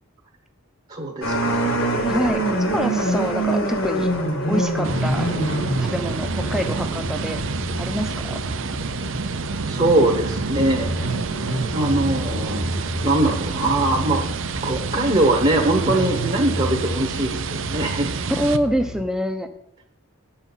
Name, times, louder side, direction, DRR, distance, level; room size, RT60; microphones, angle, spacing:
voice 1, 0.9-1.9 9.7-10.9 11.7-12.7 13.0-14.3 14.6-18.1, right 2 dB, 30° right, 1 dB, 1.2 m, -22 dB
sound 1, 1.2-19.0, right 1 dB, 70° left, 2.3 m, -27 dB
voice 2, 2.1-2.4 2.7-4.1 4.4-5.3 5.8-7.4 7.8-8.4 18.3-19.5, equal, 5° right, 6 dB, 0.8 m, -26 dB
sound 2, 4.8-18.6, right 4 dB, 65° right, 0.6 m, -28 dB
9.6 x 5.7 x 7.2 m, 0.74 s
head